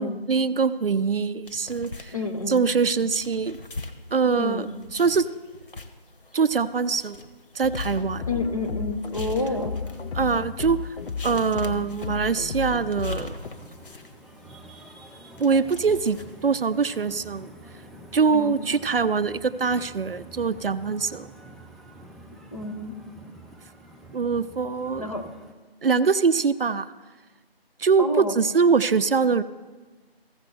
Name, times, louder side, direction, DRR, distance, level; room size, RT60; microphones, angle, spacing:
voice 1, 0.0-2.1 2.5-3.6 4.1-4.7 4.9-5.3 6.3-7.2 7.6-8.3 10.1-10.8 11.2-13.3 15.4-17.5 18.1-21.3 24.1-25.1 25.8-26.9 27.8-29.4, right 5 dB, 65° right, 15 dB, 0.5 m, -23 dB
sound 1, 1.4-17.1, left 2 dB, 60° left, 0.9 m, -44 dB
voice 2, 2.1-2.6 4.4-4.7 8.3-9.7 18.3-18.6 22.5-22.9 25.0-25.3 28.0-28.4, left 2 dB, 35° left, 5 dB, 0.7 m, -29 dB
sound 2, 7.6-13.5, left 6 dB, 85° left, 0.5 m, -33 dB
sound 3, 9.3-25.5, right 1 dB, ahead, 0.3 m, -48 dB
14.5 x 7.4 x 3.2 m, 1.3 s
figure-of-eight pair, 165°, 31 cm